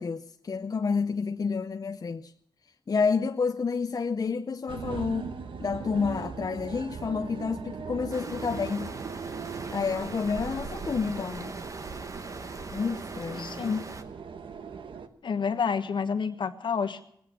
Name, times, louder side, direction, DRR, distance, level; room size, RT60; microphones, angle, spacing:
voice 1, 0.0-2.3 2.9-5.3 5.6-8.9 9.7-11.5 12.7-13.7, left 5 dB, 50° left, 0.6 m, -29 dB
sound 1, 4.7-15.1, right 6 dB, 90° right, 1.1 m, -40 dB
sound 2, 8.1-14.0, right 3 dB, 40° right, 1.2 m, -40 dB
voice 2, 13.4-13.8 15.2-17.0, left 6 dB, 75° left, 1.3 m, -29 dB
19.5 x 8.5 x 8.7 m
wide cardioid pair, 95°, 8 cm